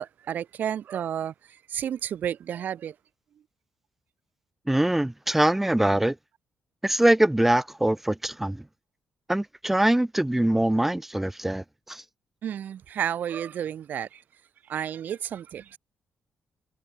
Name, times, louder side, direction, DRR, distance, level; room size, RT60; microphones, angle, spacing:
voice 1, 0.0-2.9 12.4-14.2 14.7-15.8, right 9 dB, 65° right, 4.4 m, -31 dB
voice 2, 4.7-6.1 6.8-8.6 9.3-12.0, right 1 dB, 5° right, 0.9 m, -23 dB
cardioid pair, 110°, 3 cm